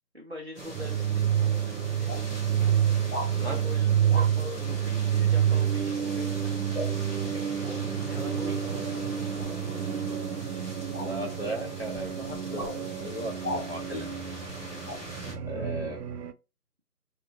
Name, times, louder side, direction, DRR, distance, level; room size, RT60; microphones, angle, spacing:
voice 1, 0.1-1.3 1.7-2.1 2.7-9.1 15.5-16.0, left 1 dB, 45° right, -1 dB, 0.5 m, -44 dB
sound 1, 0.5-15.3, right 1 dB, 20° left, 1.8 m, -40 dB
sound 2, 0.8-16.3, right 9 dB, 90° right, 0.5 m, -29 dB
sound 3, 1.4-1.5 2.0-2.3 3.1-3.3 4.1-4.3 6.7-6.9 9.3-9.6 10.9-11.1 12.5-12.8 13.4-13.7 14.9-15.0, left 1 dB, 70° left, 1.7 m, -35 dB
voice 2, 10.9-14.2 15.5-16.0, right 1 dB, 40° left, 1 dB, 0.9 m, -36 dB
3.3 x 2.9 x 2.4 m, 0.27 s
figure-of-eight pair, 170°, 47 cm